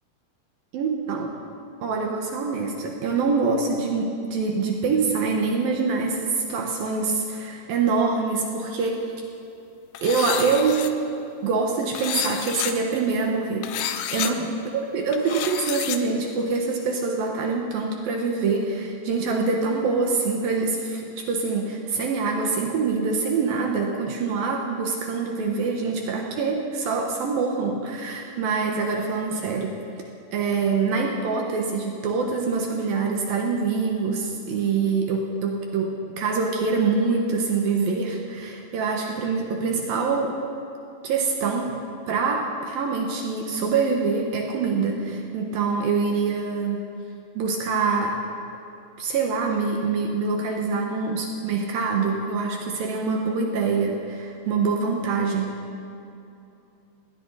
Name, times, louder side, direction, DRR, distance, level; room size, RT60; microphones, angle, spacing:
voice 1, 0.7-1.4 1.8-9.1 10.0-11.0 11.4-13.7 14.1-14.5 14.9-29.8 30.3-40.4 41.0-41.8 42.1-46.8 47.3-48.2 49.0-55.6, right 4 dB, 65° right, 1 dB, 2.6 m, -25 dB
sound 1, 9.9-10.9 11.9-12.7 13.6-14.3 15.1-16.0, left 10 dB, 80° left, 2.0 m, -30 dB
21.0 x 16.5 x 4.1 m, 2.7 s
omnidirectional pair, 5.0 m